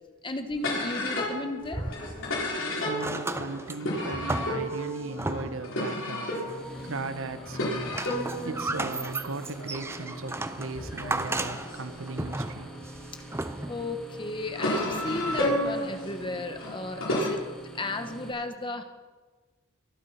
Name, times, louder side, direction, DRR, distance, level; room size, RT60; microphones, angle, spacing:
voice 1, 0.2-1.8 8.7-8.8 13.7-17.4 17.7-18.8, left 2 dB, 25° left, 7 dB, 1.2 m, -34 dB
sound 1, 0.6-13.2 13.8-17.3, left 1 dB, 65° left, 4.1 m, -33 dB
sound 2, 1.6-2.6 2.9-5.8 6.4-7.1 7.5-13.9 14.8-14.9, right 2 dB, 10° right, 0.5 m, -35 dB
voice 2, 2.8-6.4 6.8-8.0 8.4-12.7 16.8-17.0, right 3 dB, 65° right, 10 dB, 1.1 m, -37 dB
sound 3, 6.4-18.3, right 1 dB, 5° left, 2.5 m, -44 dB
23.0 x 8.4 x 5.8 m, 1.3 s
head